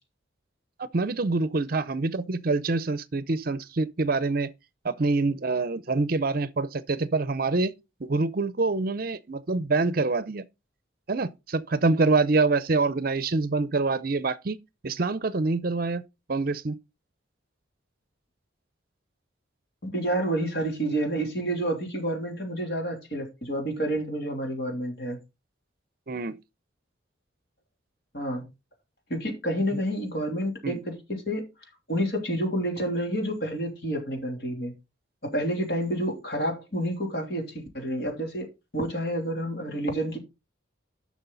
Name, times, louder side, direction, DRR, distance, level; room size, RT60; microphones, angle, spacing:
voice 1, 0.8-4.5 4.8-7.7 8.0-10.4 11.1-14.6 14.8-16.0 16.3-16.8 26.1-26.4 30.6-30.8, right 3 dB, 50° right, 0.6 m, -26 dB
voice 2, 19.8-25.2 28.1-28.5 29.1-31.5 31.9-34.7 35.2-38.5 38.7-40.2, right 1 dB, 55° left, 3.0 m, -29 dB
11.0 x 6.2 x 4.0 m
head